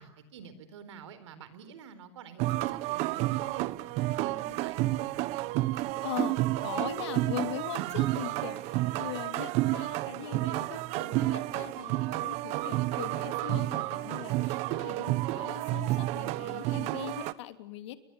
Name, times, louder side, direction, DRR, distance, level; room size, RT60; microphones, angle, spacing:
voice 1, 0.0-3.7 4.1-5.1, right 7 dB, 85° right, 13 dB, 4.2 m, -48 dB
sound 1, 2.4-17.3, right 17 dB, 50° right, 1.1 m, -31 dB
voice 2, 6.0-18.0, left 13 dB, 75° left, 9 dB, 3.0 m, -41 dB
29.5 x 23.0 x 7.1 m, 0.82 s
supercardioid pair, 135°, 15 cm